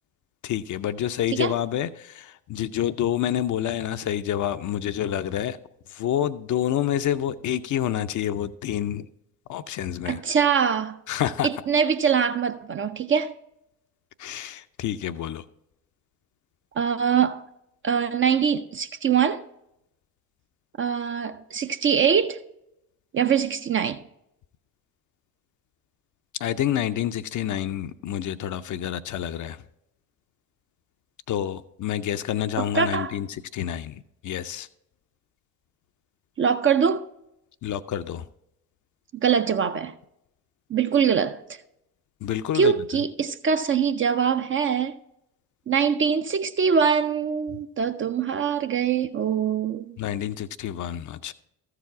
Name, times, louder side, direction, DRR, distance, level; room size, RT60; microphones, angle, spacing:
voice 1, 0.4-5.6 5.9-9.1 9.5-10.2 11.1-11.7 14.2-15.4 26.4-29.6 31.3-34.7 37.6-38.3 42.2-42.7 47.5-47.6 50.0-51.3, left 11 dB, 40° left, 0.5 m, -28 dB
voice 2, 10.1-11.0 11.4-13.3 16.8-17.4 17.8-19.4 20.8-22.4 23.1-24.0 32.7-33.1 36.4-37.0 39.2-39.9 40.7-41.4 42.5-45.0 45.7-50.0, right 7 dB, 30° right, 0.4 m, -23 dB
14.0 x 4.9 x 4.6 m
figure-of-eight pair, 45°, 47 cm